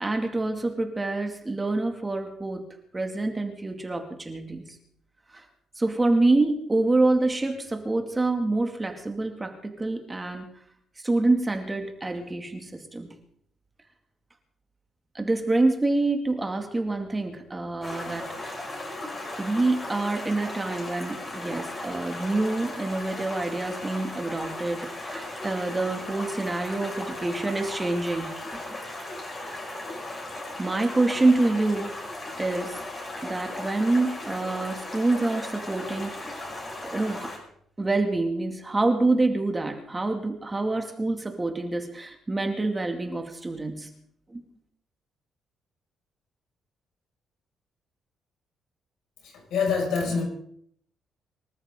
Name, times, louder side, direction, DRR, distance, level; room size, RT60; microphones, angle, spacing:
voice 1, 0.0-2.6 2.9-4.8 5.3-5.4 5.8-10.5 11.0-13.1 15.1-18.7 19.4-28.3 28.7-28.8 30.6-31.9 32.4-32.8 33.2-36.5 36.8-37.3 37.8-43.9 44.3-44.4, right 2 dB, 15° right, 4 dB, 2.3 m, -26 dB
Stream, 17.8-37.4, left 2 dB, 30° left, 5.8 m, -37 dB
voice 2, 49.2-50.3, left 5 dB, 80° left, 1 dB, 6.2 m, -26 dB
25.0 x 13.5 x 3.8 m, 0.65 s
cardioid pair, 120°, 0 cm